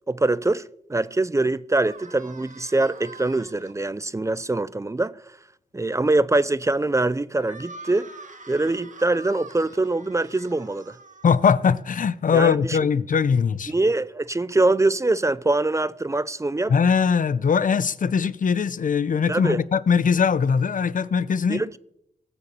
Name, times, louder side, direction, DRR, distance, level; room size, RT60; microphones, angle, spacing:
voice 1, 0.1-0.6 0.9-5.1 5.7-8.1 8.5-10.9 12.3-12.8 13.7-16.7 19.3-19.6 21.5-21.8, right 2 dB, 20° right, 0.5 m, -23 dB
sound 1, 1.9-3.7 7.4-11.7, right 3 dB, 60° right, 2.0 m, -45 dB
voice 2, 11.2-13.7 16.7-21.6, left 6 dB, 65° left, 0.7 m, -21 dB
18.5 x 6.9 x 8.5 m
wide cardioid pair, 90°, 15 cm